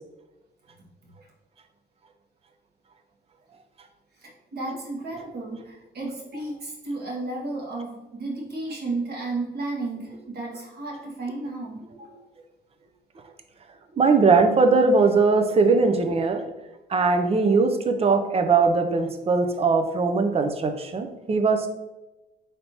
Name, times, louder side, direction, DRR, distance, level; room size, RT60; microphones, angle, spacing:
voice 1, 4.2-12.1, right 2 dB, 55° right, -2 dB, 1.4 m, -33 dB
voice 2, 13.9-16.5 16.9-21.7, right 4 dB, 30° right, 7 dB, 0.5 m, -20 dB
4.3 x 3.3 x 2.7 m, 1.0 s
cardioid pair, 90°, 20 cm